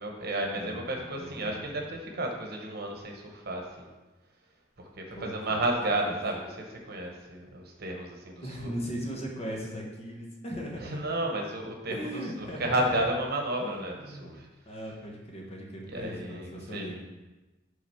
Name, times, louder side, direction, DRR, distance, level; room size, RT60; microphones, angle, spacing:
voice 1, 0.0-3.9 4.8-8.7 10.8-14.5 15.9-16.9, right 1 dB, 55° right, 1 dB, 1.1 m, -32 dB
voice 2, 0.5-1.8 5.1-5.7 6.0-6.2 8.4-11.0 11.9-13.0 13.5-14.3 14.6-17.0, equal, 35° left, -1 dB, 1.2 m, -39 dB
5.9 x 3.9 x 5.7 m, 1.1 s
head